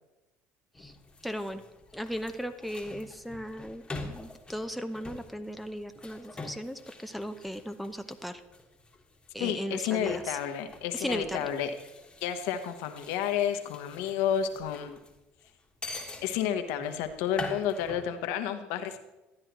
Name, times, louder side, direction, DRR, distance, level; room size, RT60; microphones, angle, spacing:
sound 1, 0.7-18.1, left 3 dB, 20° left, 1.5 m, -45 dB
voice 1, 1.2-1.6 1.9-8.4 9.3-10.4 10.9-11.5, equal, ahead, 7 dB, 0.7 m, -37 dB
voice 2, 9.4-11.7 12.2-15.0 16.2-19.0, left 9 dB, 80° left, 7 dB, 0.9 m, -31 dB
13.0 x 9.8 x 3.0 m, 1.0 s
supercardioid pair, 90°, 5 cm